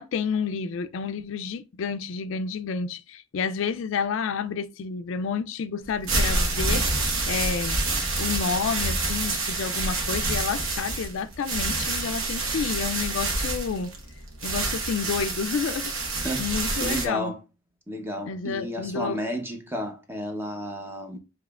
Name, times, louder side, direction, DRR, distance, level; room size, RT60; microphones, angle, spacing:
voice 1, 0.0-6.9 7.3-7.8 8.2-13.9 14.4-15.9 16.4-17.3 18.3-19.2 21.1-21.2, left 6 dB, 65° left, 0.3 m, -30 dB
sound 1, 5.8-17.1, right 2 dB, 75° right, 1.1 m, -27 dB
voice 2, 16.8-17.4 17.9-21.2, equal, 10° right, 0.7 m, -32 dB
7.1 x 2.9 x 2.3 m
head